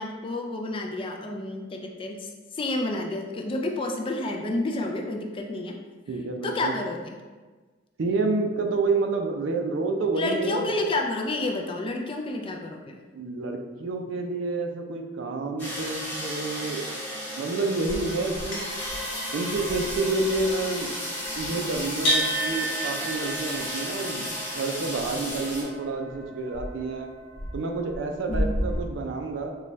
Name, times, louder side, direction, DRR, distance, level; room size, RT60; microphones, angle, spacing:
voice 1, 0.0-5.8 6.4-7.0 10.1-13.0 28.3-28.5, left 2 dB, 25° left, 2 dB, 0.3 m, -30 dB
voice 2, 6.1-6.7 8.0-10.7 13.1-17.0 17.4-18.7 19.3-20.9 21.4-27.1 27.5-29.5, right 3 dB, 70° right, 4 dB, 0.4 m, -29 dB
sound 1, 15.6-25.6, left 1 dB, 10° left, 0.9 m, -34 dB
sound 2, 17.8-28.8, equal, 65° left, 0.9 m, -33 dB
3.9 x 2.3 x 3.1 m, 1.4 s
head